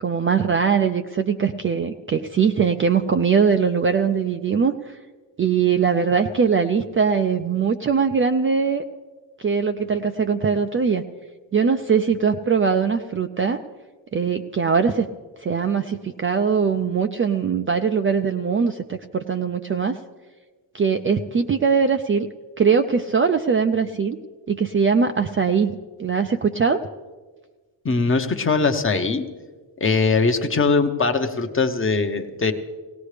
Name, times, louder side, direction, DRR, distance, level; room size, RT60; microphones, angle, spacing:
voice 1, 0.0-5.0 5.4-8.8 9.4-11.0 11.5-13.6 14.1-15.1 15.4-20.0 20.7-22.3 22.6-24.2 24.5-26.8, right 6 dB, 30° right, 6 dB, 0.4 m, -21 dB
voice 2, 27.8-29.2 29.8-32.5, left 4 dB, 30° left, 7 dB, 0.8 m, -21 dB
18.5 x 17.5 x 3.3 m, 1.4 s
wide cardioid pair, 145°, 45 cm